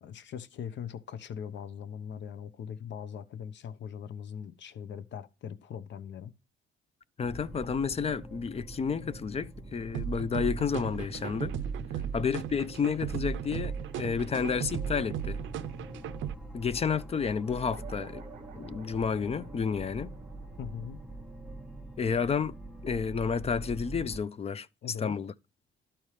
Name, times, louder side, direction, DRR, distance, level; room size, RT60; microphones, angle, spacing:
voice 1, 0.0-6.3 20.6-21.0 24.8-25.2, left 8 dB, 65° left, 0.8 m, -41 dB
voice 2, 7.2-11.6 12.1-15.4 16.5-18.2 18.6-20.1 22.0-22.5 22.8-24.7 25.0-25.3, left 6 dB, 30° left, 0.4 m, -31 dB
sound 1, 7.2-24.2, right 1 dB, ahead, 1.0 m, -44 dB
sound 2, 9.9-16.3, right 8 dB, 75° right, 0.5 m, -36 dB
sound 3, 17.5-22.3, right 8 dB, 40° right, 1.0 m, -51 dB
12.0 x 4.4 x 3.2 m
cardioid pair, 90°, 20 cm